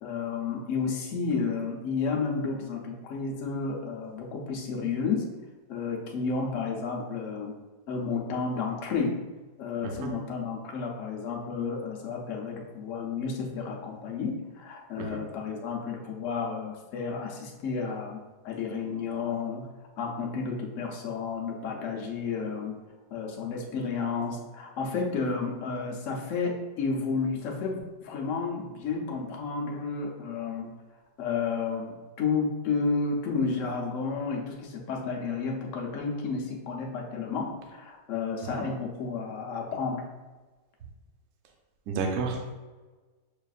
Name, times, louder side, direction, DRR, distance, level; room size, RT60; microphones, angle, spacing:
voice 1, 0.0-5.3 5.7-7.5 7.9-9.2 9.6-18.2 18.4-19.7 20.0-22.7 23.1-30.7 31.2-40.0, left 4 dB, 60° left, 0 dB, 0.9 m, -31 dB
voice 2, 41.9-42.4, right 4 dB, 60° right, 1 dB, 0.9 m, -30 dB
6.6 x 2.5 x 2.4 m, 1.3 s
omnidirectional pair, 1.8 m